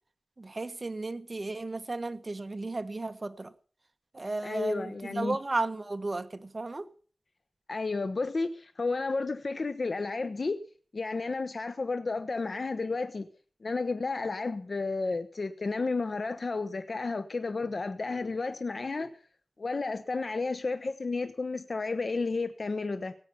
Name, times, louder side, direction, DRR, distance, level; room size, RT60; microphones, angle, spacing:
voice 1, 0.4-3.5 4.1-6.9, right 2 dB, 40° right, 1.3 m, -34 dB
voice 2, 4.4-5.4 7.7-10.6 10.9-13.3 13.6-19.1 19.6-23.1, left 3 dB, 60° left, 1.0 m, -32 dB
17.5 x 8.3 x 7.2 m
wide cardioid pair, 60°, 0 cm